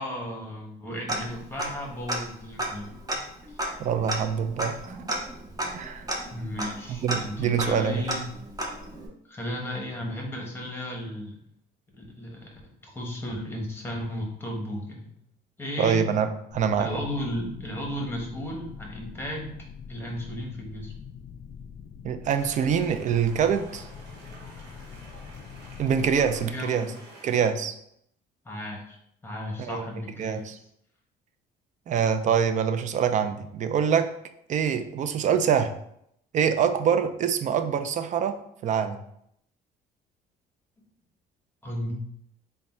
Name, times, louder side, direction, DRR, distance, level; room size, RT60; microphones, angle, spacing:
voice 1, 0.0-2.9 3.5-3.6 6.3-8.3 9.3-11.4 12.0-12.5 12.8-15.1 15.6-16.0 16.8-19.5 19.9-20.9 26.4-26.8 28.4-29.0 29.2-30.6 41.6-41.9, left 1 dB, 15° left, 0 dB, 1.0 m, -34 dB
Tick-tock, 1.1-1.8 2.1-2.2 2.6-9.1, right 1 dB, 20° right, 0.7 m, -33 dB
voice 2, 3.8-5.0 5.7-6.1 6.9-8.0 15.8-16.9 22.0-23.9 25.8-26.9 27.2-27.7 29.6-29.9 30.2-30.6 31.9-34.1 34.5-35.7 36.3-39.0, right 7 dB, 45° right, 9 dB, 0.4 m, -25 dB
sound 1, 16.5-26.5, left 6 dB, 50° left, 0.4 m, -44 dB
sound 2, 22.2-27.5, right 2 dB, 85° right, 1.1 m, -49 dB
3.5 x 2.2 x 4.2 m, 0.73 s
cardioid pair, 110°, 17 cm